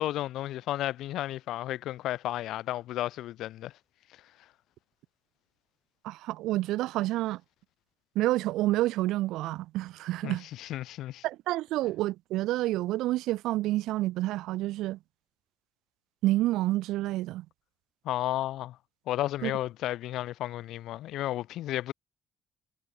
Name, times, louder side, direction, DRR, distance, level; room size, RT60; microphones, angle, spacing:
voice 1, 0.0-3.7 10.2-11.3 18.1-18.8 19.1-21.9, left 14 dB, 65° left, 3.5 m, -33 dB
voice 2, 6.0-7.4 8.1-10.4 11.2-15.0 16.2-17.4 19.4-19.5, right 16 dB, 90° right, 1.6 m, -29 dB
cardioid pair, 175°, 0 cm